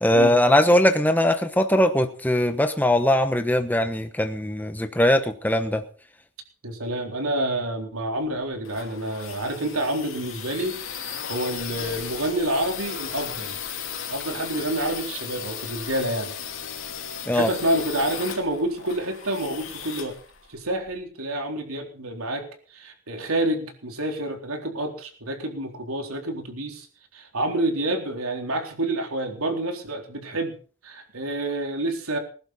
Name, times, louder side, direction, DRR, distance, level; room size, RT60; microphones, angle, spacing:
voice 1, 0.0-5.8 17.3-17.5, left 1 dB, 10° left, 8 dB, 1.0 m, -20 dB
voice 2, 6.6-13.6 14.1-16.3 17.3-20.2 20.5-26.9 27.1-30.5 30.8-32.2, right 1 dB, 75° right, 4 dB, 3.9 m, -28 dB
sound 1, 8.2-21.0, left 8 dB, 60° left, 2.7 m, -36 dB
20.5 x 11.5 x 4.2 m, 0.39 s
head